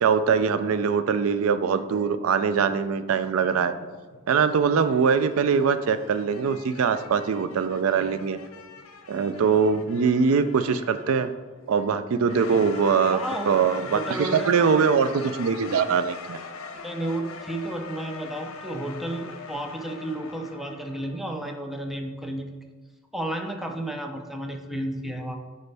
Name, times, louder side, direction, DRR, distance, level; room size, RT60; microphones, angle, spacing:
voice 1, 0.0-3.7 4.3-8.4 9.1-11.3 11.7-13.2 13.5-16.4, right 6 dB, 75° right, 12 dB, 0.4 m, -22 dB
sound 1, 3.5-4.3 5.0-11.6 12.2-21.2, left 4 dB, 75° left, 0.8 m, -42 dB
voice 2, 13.1-13.6 13.9-14.8 16.7-22.5 23.1-25.3, right 1 dB, ahead, 3 dB, 0.6 m, -32 dB
8.1 x 5.3 x 3.4 m, 1.3 s
head